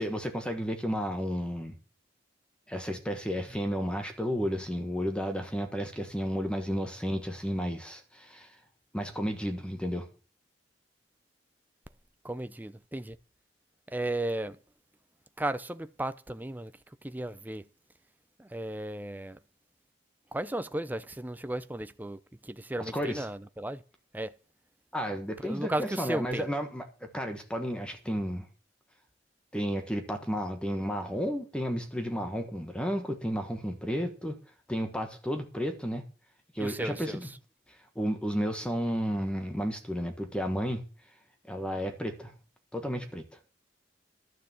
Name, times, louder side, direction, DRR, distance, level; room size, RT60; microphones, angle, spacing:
voice 1, 0.0-1.7 2.7-8.5 8.9-10.1 22.8-23.2 24.9-28.5 29.5-34.4 34.7-36.1 36.5-37.3 37.9-40.8 41.5-42.3 42.7-43.2, equal, 5° left, 1.4 m, -32 dB
voice 2, 12.2-13.2 13.9-14.6 15.4-16.7 17.0-17.6 18.4-19.4 20.3-23.8 24.1-24.3 25.4-26.5 36.6-37.2, right 1 dB, 10° right, 0.6 m, -35 dB
12.0 x 6.6 x 7.3 m
head